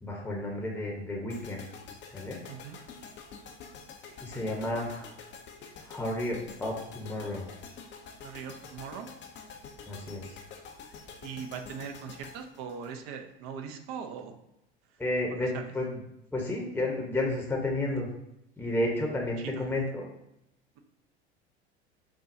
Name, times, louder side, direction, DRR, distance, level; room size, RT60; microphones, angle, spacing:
voice 1, 0.0-1.6 2.1-2.4 4.2-5.1 5.8-7.5 9.9-10.4 15.0-16.0 16.3-18.1 18.6-20.0, left 1 dB, 5° left, -1 dB, 0.8 m, -32 dB
sound 1, 1.3-13.5, left 5 dB, 35° left, 0.6 m, -48 dB
voice 2, 2.5-2.8 4.7-4.8 8.2-9.1 11.2-14.3 15.3-15.7 19.4-19.7, right 7 dB, 50° right, 6 dB, 0.6 m, -40 dB
6.0 x 2.2 x 2.6 m, 0.84 s
figure-of-eight pair, 75°, 33 cm